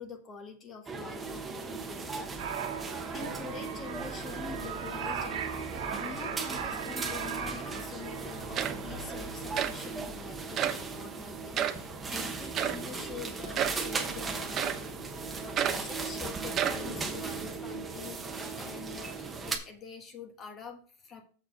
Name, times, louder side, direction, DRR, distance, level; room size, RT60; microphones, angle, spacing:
voice 1, 0.0-2.3 3.1-15.0 15.3-21.2, left 5 dB, 30° left, 5 dB, 1.4 m, -46 dB
sound 1, 0.9-19.6, right 4 dB, 15° right, 1.0 m, -37 dB
sound 2, 2.4-9.5 9.7-9.9, right 8 dB, 80° right, 1.5 m, -39 dB
sound 3, 8.2-8.3 8.5-9.0 9.6-9.8 10.6-10.9 11.5-11.8 12.6-12.9 13.5-13.9 14.6-14.9 15.6-15.9 16.5-16.9, right 9 dB, 30° right, 0.7 m, -31 dB
7.1 x 4.7 x 5.8 m, 0.42 s
supercardioid pair, 140°, 0 cm